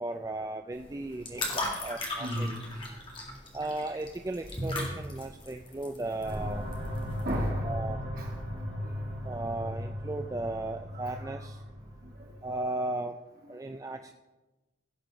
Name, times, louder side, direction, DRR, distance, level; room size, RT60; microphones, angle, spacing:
voice 1, 0.0-2.5 3.5-6.7 7.6-8.1 9.2-11.6 12.4-13.2 13.5-14.1, right 2 dB, 15° right, 0.3 m, -36 dB
sound 1, 0.7-7.5, left 1 dB, 30° left, 2.0 m, -37 dB
voice 2, 2.2-2.9 5.5-5.6 7.2-7.7 8.1-8.3 8.8-9.3 10.9-11.3 12.0-12.4, equal, 50° right, 2.4 m, -36 dB
sound 2, 6.2-12.5, equal, 65° right, 3.4 m, -37 dB
16.5 x 6.8 x 3.8 m
head